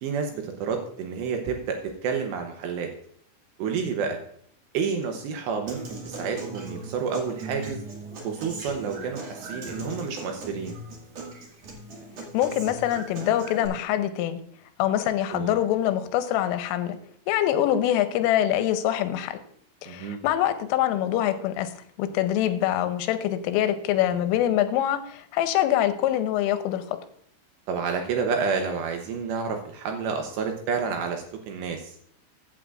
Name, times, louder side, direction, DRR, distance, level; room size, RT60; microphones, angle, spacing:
voice 1, 0.0-2.9 3.6-4.2 4.7-7.8 8.2-10.7 15.3-15.5 19.9-20.2 27.7-31.9, right 5 dB, 75° right, 4 dB, 2.7 m, -29 dB
Human voice / Acoustic guitar, 5.7-13.7, right 2 dB, 50° right, 2.1 m, -39 dB
voice 2, 12.3-14.4 14.8-17.0 17.3-19.4 19.8-27.0, left 12 dB, 85° left, 9 dB, 3.3 m, -24 dB
15.0 x 8.6 x 2.5 m, 0.66 s
omnidirectional pair, 5.8 m